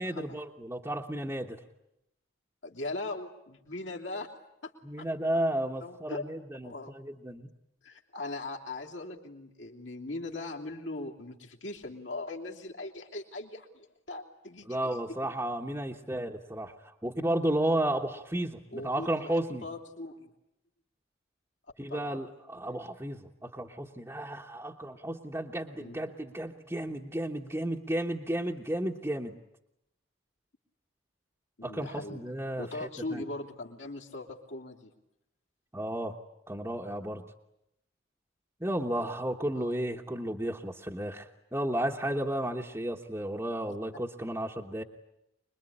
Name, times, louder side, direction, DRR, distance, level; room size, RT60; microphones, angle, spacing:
voice 1, 0.0-1.6 4.8-7.5 14.7-19.7 21.8-29.4 31.6-33.2 35.7-36.2 36.5-37.2 38.6-44.8, right 1 dB, 15° right, -1 dB, 1.2 m, -33 dB
voice 2, 2.6-4.3 4.6-4.7 5.0-5.1 5.8-6.3 6.6-6.9 7.8-14.9 18.7-20.3 21.9-22.2 22.6-22.8 25.8-26.0 31.6-32.2 32.6-34.9 39.5-39.8 43.7-43.8, left 2 dB, 70° left, 0 dB, 2.9 m, -40 dB
25.5 x 21.5 x 10.0 m, 0.82 s
head